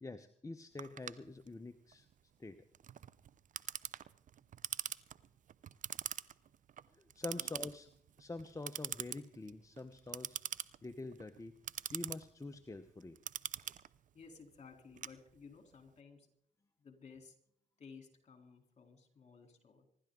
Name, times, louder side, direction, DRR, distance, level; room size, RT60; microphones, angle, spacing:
voice 1, 0.0-2.1 2.4-2.6 6.9-7.9 8.2-10.4 10.8-11.6 11.9-13.2, left 2 dB, 20° left, 9 dB, 0.9 m, -46 dB
Clock, 0.8-15.7, right 9 dB, 50° right, 0.6 m, -45 dB
voice 2, 14.1-16.3 16.8-17.4 17.8-19.9, left 5 dB, 45° left, 4 dB, 3.6 m, -56 dB
25.0 x 12.0 x 3.9 m, 0.64 s
supercardioid pair, 55°, 16 cm